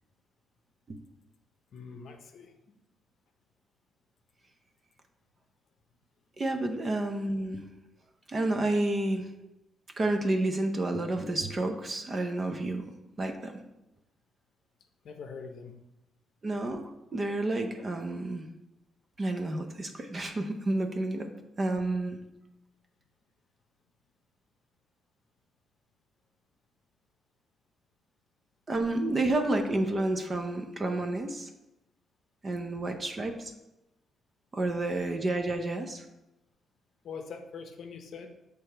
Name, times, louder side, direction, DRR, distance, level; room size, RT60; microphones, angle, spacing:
voice 1, 1.7-2.8 15.0-15.8 37.0-38.3, left 5 dB, 55° left, 5 dB, 0.7 m, -43 dB
voice 2, 6.4-7.6 8.3-9.3 10.0-12.8 13.2-13.6 16.4-18.5 19.2-21.3 21.6-22.2 28.7-31.5 32.4-33.5 34.5-36.0, right 2 dB, 25° right, 5 dB, 0.6 m, -30 dB
6.8 x 3.4 x 4.4 m, 0.93 s
cardioid pair, 150°, 0 cm